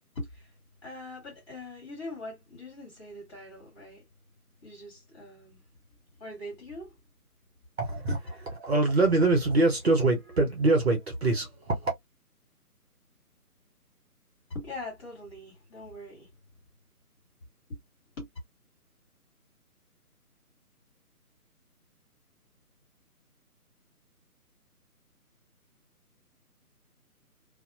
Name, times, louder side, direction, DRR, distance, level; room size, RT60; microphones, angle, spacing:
voice 1, 0.2-0.5 0.8-4.1 4.6-5.6 6.2-7.0 14.5-16.3 17.7-17.8 18.2-18.3, left 2 dB, 20° left, 1.7 m, -42 dB
voice 2, 7.8-8.2 8.6-11.9, right 2 dB, 40° right, 1.0 m, -24 dB
2.8 x 2.3 x 2.6 m
figure-of-eight pair, 150°, 46 cm